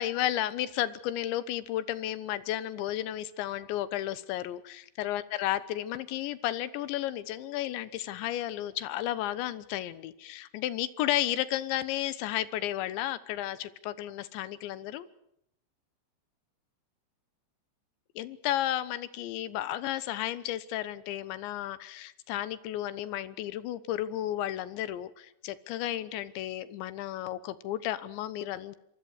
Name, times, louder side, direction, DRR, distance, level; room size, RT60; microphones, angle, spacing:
voice 1, 0.0-15.1 18.2-28.8, left 13 dB, 85° left, 15 dB, 3.4 m, -33 dB
27.5 x 24.0 x 6.5 m, 0.74 s
omnidirectional pair, 5.1 m